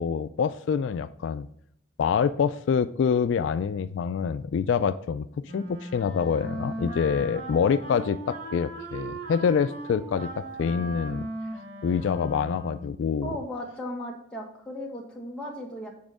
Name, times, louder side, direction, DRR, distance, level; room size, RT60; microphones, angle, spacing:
voice 1, 0.0-1.5 2.0-11.3 11.8-13.4, left 6 dB, 70° left, 13 dB, 0.3 m, -26 dB
Wind instrument woodwind instrument, 5.4-13.0, right 1 dB, 60° right, 2.8 m, -38 dB
voice 2, 13.2-15.9, equal, 5° left, -2 dB, 1.5 m, -36 dB
7.4 x 4.4 x 6.2 m, 0.73 s
head